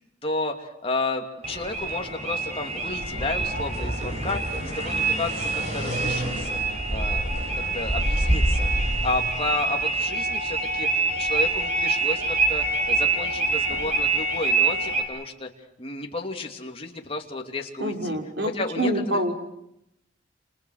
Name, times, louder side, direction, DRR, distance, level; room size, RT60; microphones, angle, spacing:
voice 1, 0.2-7.2 7.5-8.7 9.0-15.5 15.8-19.3, left 2 dB, 30° left, 2 dB, 2.9 m, -32 dB
sound 1, 1.4-15.0, right 3 dB, 35° right, 5.5 m, -25 dB
voice 2, 17.8-19.3, right 1 dB, 60° right, 5 dB, 3.6 m, -26 dB
29.0 x 27.0 x 6.6 m, 0.81 s
head